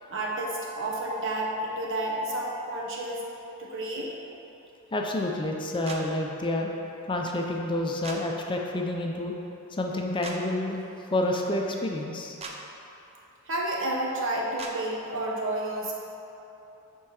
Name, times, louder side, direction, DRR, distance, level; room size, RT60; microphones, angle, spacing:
voice 1, 0.1-3.2 3.6-4.1 13.5-15.9, right 1 dB, 60° right, -3 dB, 1.1 m, -30 dB
voice 2, 4.9-6.7 7.1-9.3 9.7-10.8 11.1-12.3, left 1 dB, 20° left, 0 dB, 0.5 m, -29 dB
sound 1, 5.9-6.0 8.0-8.2 10.2-10.4 12.4-12.6 14.6-14.7, right 4 dB, 30° right, 0.6 m, -38 dB
7.3 x 4.5 x 4.8 m, 3.0 s
head